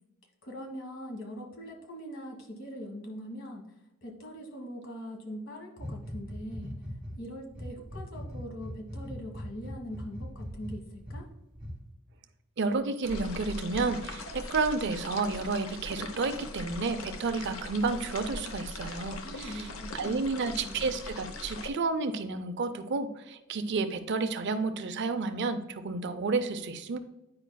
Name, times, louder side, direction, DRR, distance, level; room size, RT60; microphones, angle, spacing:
voice 1, 0.4-3.6 4.0-6.7 7.2-11.3 19.2-20.8, equal, 70° left, 1 dB, 1.4 m, -42 dB
sound 1, 5.8-7.2 7.5-11.2 11.6-11.7, equal, 5° right, 2.2 m, -40 dB
voice 2, 12.6-19.7 19.9-27.0, right 3 dB, 60° right, 9 dB, 0.5 m, -31 dB
sound 2, 13.0-21.7, left 2 dB, 90° left, 0.8 m, -41 dB
9.6 x 4.9 x 2.2 m, 0.94 s
head